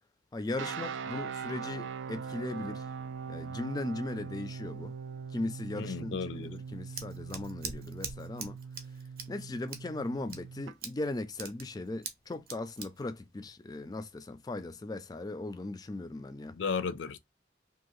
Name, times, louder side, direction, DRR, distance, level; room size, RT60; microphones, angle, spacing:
voice 1, 0.3-2.9 3.3-4.9 5.3-8.6 9.3-16.6, left 2 dB, 20° left, 0.3 m, -38 dB
sound 1, 0.6-10.7, right 6 dB, 90° right, 0.3 m, -41 dB
voice 2, 5.8-6.5 16.6-17.2, left 5 dB, 85° left, 0.4 m, -34 dB
Scissors, 6.4-14.2, right 5 dB, 55° right, 0.6 m, -45 dB
2.7 x 2.4 x 3.0 m
head